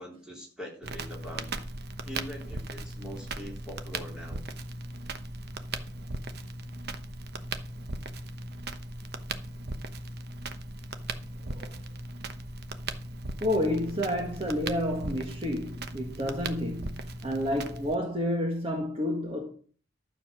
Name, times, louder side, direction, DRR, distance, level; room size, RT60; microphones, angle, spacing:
voice 1, 0.0-1.5 2.1-4.4, equal, 5° right, 3.7 m, -43 dB
Crackle, 0.8-17.9, right 2 dB, 55° right, 1.0 m, -38 dB
voice 2, 13.4-19.5, left 1 dB, 30° right, 1.6 m, -30 dB
12.0 x 6.8 x 6.0 m
head